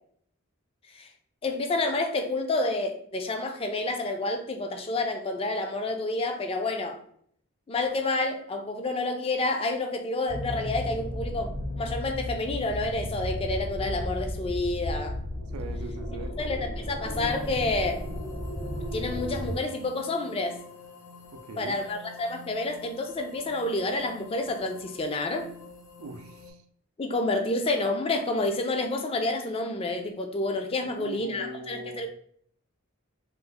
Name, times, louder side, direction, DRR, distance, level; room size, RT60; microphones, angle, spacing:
voice 1, 1.4-7.0 7.7-15.2 16.4-18.0 18.9-20.6 21.6-25.5 27.0-32.1, left 2 dB, 25° left, 5 dB, 0.4 m, -29 dB
sound 1, 10.3-19.6, left 1 dB, 70° left, 1.3 m, -34 dB
voice 2, 15.5-16.4 21.3-21.8 26.0-26.6 30.8-32.1, right 2 dB, 90° right, 7 dB, 0.4 m, -40 dB
sound 2, 17.1-26.5, left 4 dB, 90° left, 0.7 m, -48 dB
3.1 x 2.1 x 3.7 m, 0.64 s
head